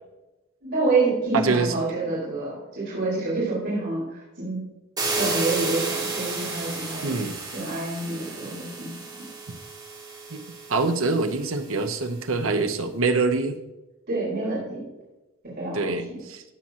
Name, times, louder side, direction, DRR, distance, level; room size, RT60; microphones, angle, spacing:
voice 1, 0.6-4.6 5.2-7.2 7.5-9.2 14.1-14.9 15.4-16.2, right 3 dB, 50° right, -8 dB, 4.1 m, -28 dB
voice 2, 1.3-1.7 7.0-7.4 10.3-10.4 10.7-13.6 15.7-16.4, right 3 dB, 70° right, 6 dB, 0.9 m, -25 dB
sound 1, 5.0-11.8, right 4 dB, 20° right, 3.5 m, -32 dB
17.0 x 7.4 x 2.9 m, 1.0 s
head